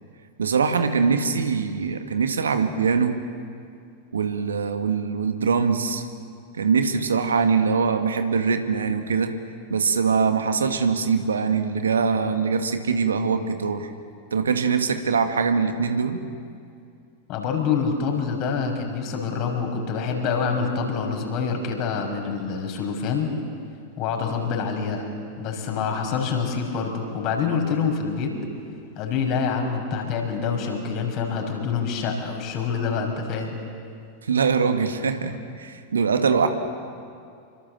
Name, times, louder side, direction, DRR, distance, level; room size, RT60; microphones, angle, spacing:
voice 1, 0.4-3.2 4.1-6.0 6.5-9.3 9.7-13.9 14.3-16.2 34.2-36.5, right 5 dB, 70° right, 7 dB, 2.0 m, -23 dB
voice 2, 17.3-23.3 24.0-25.1 25.4-28.4 29.0-33.6, left 5 dB, 40° left, 3 dB, 6.0 m, -26 dB
28.0 x 25.0 x 7.6 m, 2.4 s
figure-of-eight pair, 90°, 0 cm